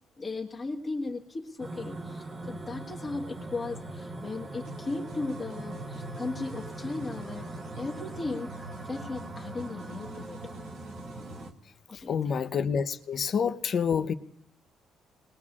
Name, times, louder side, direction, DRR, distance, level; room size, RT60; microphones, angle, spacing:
voice 1, 0.2-7.5 7.8-10.5 11.9-12.4, left 3 dB, 30° left, 1.6 m, -36 dB
sound 1, 1.6-11.5, right 2 dB, 25° right, 1.0 m, -40 dB
sound 2, 4.6-11.5, right 1 dB, 85° right, 3.8 m, -53 dB
voice 2, 11.9-14.1, left 7 dB, 50° left, 0.7 m, -28 dB
28.5 x 20.5 x 2.4 m
cardioid pair, 125°, 0 cm